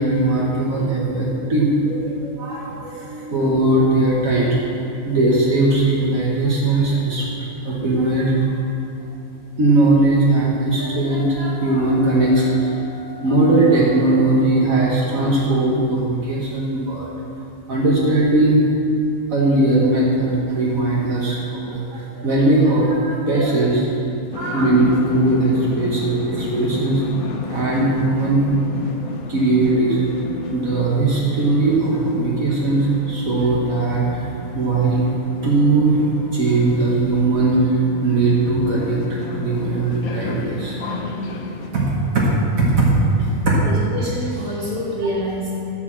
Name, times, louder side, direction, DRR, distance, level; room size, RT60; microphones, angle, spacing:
voice 1, 0.0-8.8 9.6-17.1 17.7-18.7 19.3-23.9 24.3-27.0 27.5-28.4 29.3-30.1 30.5-34.3 34.5-35.1 35.4-36.0 36.3-40.8 41.7-43.6, right 2 dB, 70° right, -5 dB, 1.7 m, -19 dB
sound 1, 24.3-41.7, left 3 dB, 80° left, 1.3 m, -32 dB
voice 2, 43.6-45.6, equal, 35° right, -6 dB, 2.2 m, -26 dB
11.5 x 4.8 x 7.3 m, 2.8 s
omnidirectional pair, 1.5 m